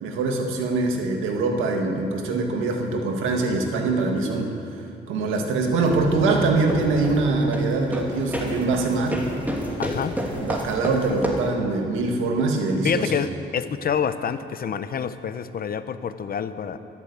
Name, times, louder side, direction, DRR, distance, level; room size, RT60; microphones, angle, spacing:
voice 1, 0.0-4.6 5.1-9.2 10.3-13.2, right 3 dB, 90° right, 2 dB, 1.9 m, -23 dB
sound 1, 5.7-11.6, equal, 10° right, 2.7 m, -30 dB
voice 2, 9.8-10.1 12.8-16.8, left 7 dB, 50° left, 11 dB, 0.8 m, -27 dB
13.5 x 12.0 x 8.1 m, 2.8 s
cardioid pair, 90°, 20 cm